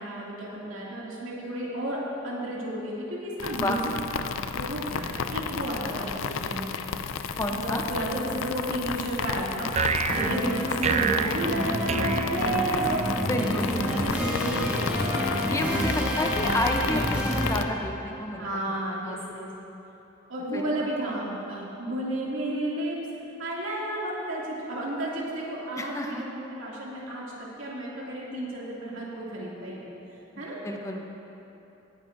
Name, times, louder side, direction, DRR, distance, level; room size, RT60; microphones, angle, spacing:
voice 1, 0.0-3.9 4.3-6.7 7.5-15.2 15.7-16.3 18.4-19.5 20.3-23.0 23.4-29.9 30.4-30.6, right 1 dB, 85° right, -5 dB, 2.4 m, -32 dB
sound 1, 3.4-17.6, left 6 dB, 80° left, 0.4 m, -33 dB
voice 2, 3.5-4.0 7.4-7.8 13.3-13.7 15.5-18.5 18.9-19.2 20.5-20.6 25.8-26.2 30.4-31.0, left 1 dB, 15° left, 2 dB, 0.7 m, -30 dB
sound 2, 9.7-13.1, right 6 dB, 35° right, 0.3 m, -29 dB
sound 3, 10.1-18.0, equal, 10° right, 1.3 m, -29 dB
17.0 x 10.5 x 2.6 m, 3.0 s
head